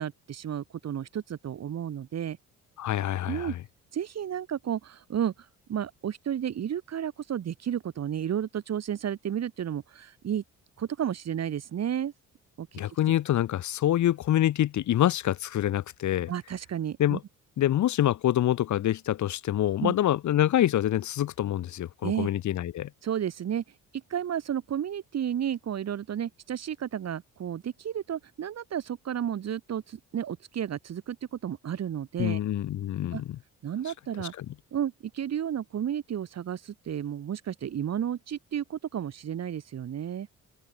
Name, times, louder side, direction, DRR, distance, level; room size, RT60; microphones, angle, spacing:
voice 1, 0.0-2.4 3.3-3.5 3.9-5.3 5.7-10.4 10.8-12.1 12.6-12.8 16.3-17.2 19.8-20.0 22.0-22.3 23.0-23.6 23.9-32.4 33.1-33.2 33.6-34.3 34.7-40.3, right 9 dB, 60° right, 2.8 m, -32 dB
voice 2, 2.8-3.6 12.7-16.3 17.0-17.2 17.6-22.9 32.2-33.4 34.4-34.5, left 12 dB, 70° left, 1.8 m, -26 dB
cardioid pair, 90°, 30 cm